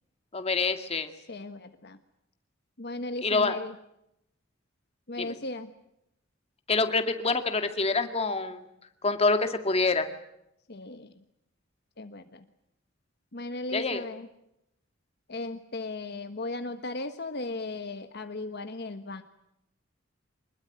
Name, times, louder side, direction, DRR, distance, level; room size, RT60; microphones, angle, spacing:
voice 1, 0.3-1.1 3.2-3.6 5.2-5.3 6.7-8.6 9.0-10.1 13.7-14.0, left 3 dB, 30° left, 7 dB, 2.2 m, -26 dB
voice 2, 1.3-2.0 2.8-3.7 5.1-5.7 10.7-11.1 12.0-12.4 13.3-14.3 15.3-19.2, left 2 dB, 55° left, 8 dB, 1.4 m, -36 dB
25.0 x 21.0 x 9.5 m, 0.83 s
head